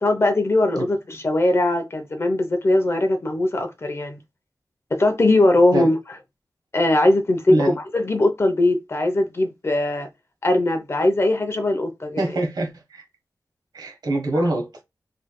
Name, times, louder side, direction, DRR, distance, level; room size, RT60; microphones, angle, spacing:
voice 1, 0.0-4.2 4.9-6.0 6.7-7.6 7.9-10.1 10.4-12.2, left 2 dB, 40° left, 0.7 m, -20 dB
voice 2, 12.2-13.0 13.7-14.7, right 1 dB, 85° right, 1.1 m, -24 dB
3.2 x 3.2 x 2.2 m
wide cardioid pair, 110°, 7 cm